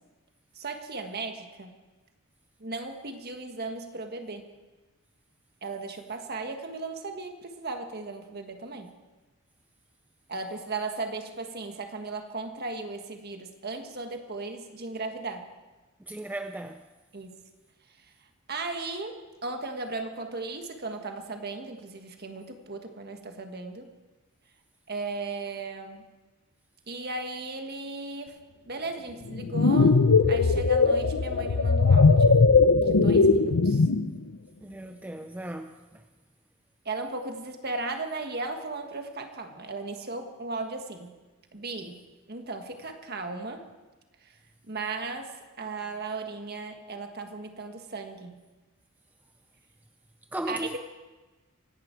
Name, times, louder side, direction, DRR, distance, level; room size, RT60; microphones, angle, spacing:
voice 1, 0.5-1.7 2.6-4.5 5.6-8.9 10.3-15.5 17.1-17.3 18.5-23.9 24.9-26.1 26.9-28.3 28.6-32.3 32.8-33.9 36.8-41.1 41.5-42.0 42.3-43.6 44.7-48.4 50.5-50.8, right 3 dB, 45° right, 5 dB, 1.6 m, -36 dB
voice 2, 16.1-16.8 34.6-35.7 50.3-50.8, right 1 dB, 5° right, 7 dB, 0.5 m, -36 dB
sound 1, 29.3-34.1, left 4 dB, 85° left, 0.7 m, -20 dB
25.5 x 11.5 x 4.6 m, 1.2 s
head